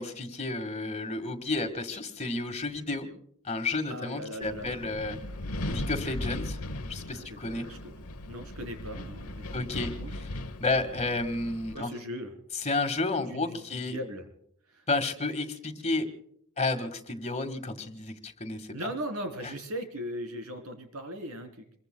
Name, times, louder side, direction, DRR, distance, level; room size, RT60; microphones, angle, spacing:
voice 1, 0.0-3.1 3.5-5.2 5.7-6.6 6.9-7.7 9.5-10.3 10.6-11.9 12.6-14.0 14.9-16.1 16.6-18.7, left 3 dB, 30° left, 7 dB, 1.7 m, -31 dB
voice 2, 3.8-4.8 7.1-7.9 8.3-10.2 11.7-12.3 13.2-14.3 14.7-14.8 18.7-21.6, equal, 75° right, 5 dB, 3.4 m, -39 dB
Wind, 4.4-11.7, left 1 dB, 75° left, 1.0 m, -38 dB
27.0 x 23.0 x 2.2 m, 0.68 s
head